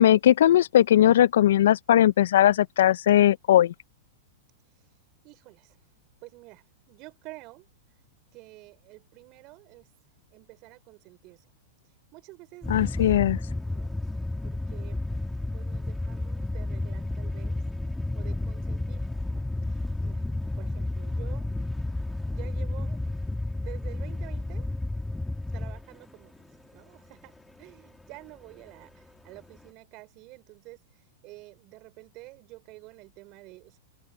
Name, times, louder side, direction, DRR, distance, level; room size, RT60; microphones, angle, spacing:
voice 1, 0.0-3.7 12.7-13.4, left 11 dB, 70° left, 0.8 m, -19 dB
voice 2, 5.2-5.8 6.2-7.7 8.3-9.9 10.3-11.4 12.1-13.1 13.6-14.0 14.4-15.0 15.5-17.6 18.1-20.2 20.6-21.5 22.3-23.0 23.6-24.7 25.5-27.3 27.6-30.8 31.2-33.8, right 22 dB, 45° right, 5.1 m, -49 dB
sound 1, 12.6-26.1 26.3-26.6 27.3-27.5 28.1-28.3 29.4-29.6, left 2 dB, 5° left, 2.6 m, -31 dB
hypercardioid pair, 105°, 0 cm